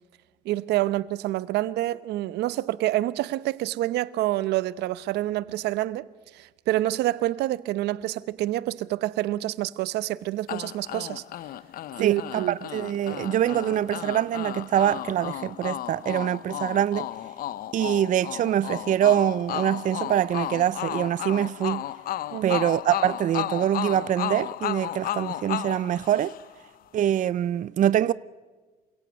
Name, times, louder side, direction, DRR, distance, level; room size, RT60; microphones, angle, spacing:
voice 1, 0.4-6.1 6.3-11.2 12.0-12.6 22.3-22.6, right 15 dB, 80° right, 0.9 m, -27 dB
sound 1, 10.5-26.7, left 13 dB, 60° left, 0.6 m, -34 dB
voice 2, 12.0-17.1 17.7-21.8 22.4-26.3 26.9-28.1, right 11 dB, 50° right, 0.6 m, -24 dB
27.5 x 17.0 x 6.3 m
cardioid pair, 110°, 17 cm